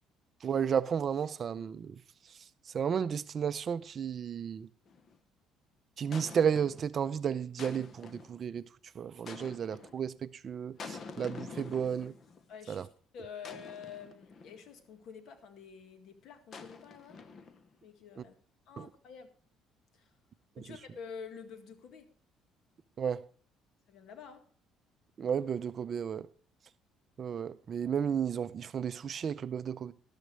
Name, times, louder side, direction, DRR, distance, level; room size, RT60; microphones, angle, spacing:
voice 1, 0.4-2.0 2.7-4.7 6.0-8.6 9.0-12.1 12.7-12.8 18.2-18.3 18.8-18.9 20.6-20.7 23.0-23.3 25.2-26.3 27.2-29.9, right 7 dB, 40° right, 0.5 m, -33 dB
sound 1, 4.9-5.2 6.1-6.9 7.6-8.4 9.3-10.0 10.8-12.4 13.4-14.7 16.5-17.8, left 4 dB, 40° left, 1.0 m, -47 dB
voice 2, 12.5-12.9 13.1-17.2 17.8-18.3 18.7-19.3 19.9-20.0 20.6-22.1 23.9-24.4, left 6 dB, 60° left, 1.9 m, -48 dB
13.0 x 12.0 x 3.3 m
cardioid pair, 135°, 0 cm